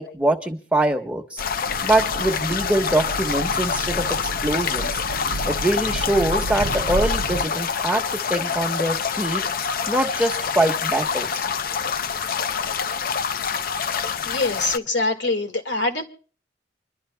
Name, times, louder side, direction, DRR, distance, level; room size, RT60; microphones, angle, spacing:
voice 1, 0.0-1.4 1.8-5.0 5.5-9.4 9.9-11.5, right 1 dB, 5° right, 1 dB, 1.1 m, -23 dB
sound 1, 1.4-14.8, left 6 dB, 50° left, 0.5 m, -26 dB
sound 2, 1.7-7.5, right 2 dB, 75° right, 0.5 m, -31 dB
voice 2, 14.2-16.0, left 2 dB, 90° left, 5 dB, 1.9 m, -24 dB
27.0 x 12.0 x 2.2 m, 0.41 s
head